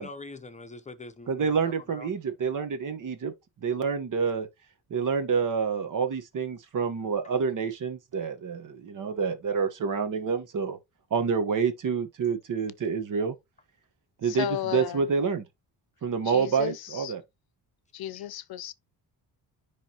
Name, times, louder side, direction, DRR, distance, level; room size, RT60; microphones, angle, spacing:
voice 1, 0.0-2.1, left 2 dB, 20° left, 0.8 m, -43 dB
voice 2, 1.3-3.3 3.6-4.5 4.9-10.8 11.1-13.4 14.2-15.4 16.0-17.2, right 5 dB, 50° right, 1.3 m, -28 dB
voice 3, 14.2-15.1 16.2-17.1 17.9-18.7, left 11 dB, 65° left, 0.7 m, -34 dB
9.9 x 3.5 x 2.9 m
cardioid pair, 140°, 40 cm